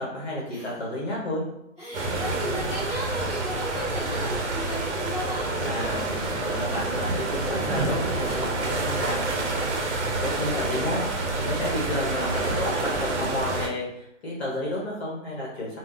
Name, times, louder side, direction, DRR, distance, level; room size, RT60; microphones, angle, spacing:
voice 1, 0.0-1.4 4.1-4.4 5.6-15.8, left 1 dB, 55° left, -4 dB, 0.9 m, -32 dB
voice 2, 1.8-6.0 8.2-8.7 9.8-10.9 11.9-12.3, equal, 10° left, -16 dB, 1.2 m, -36 dB
sound 1, 1.9-13.7, right 2 dB, 60° right, 0.6 m, -28 dB
2.6 x 2.0 x 3.6 m, 0.81 s
hypercardioid pair, 175°, 38 cm